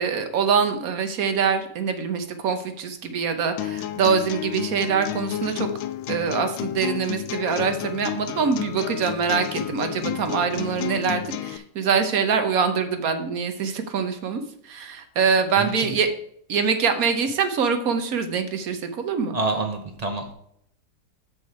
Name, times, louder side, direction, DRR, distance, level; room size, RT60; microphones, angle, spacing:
voice 1, 0.0-5.7 6.1-14.4 14.7-16.1 16.5-19.4, right 6 dB, 55° right, 8 dB, 1.2 m, -24 dB
sound 1, 3.6-11.6, left 12 dB, 80° left, 1.3 m, -31 dB
voice 2, 15.5-16.0 19.3-20.3, right 3 dB, 40° right, 5 dB, 0.5 m, -27 dB
7.5 x 6.3 x 4.8 m, 0.67 s
omnidirectional pair, 2.0 m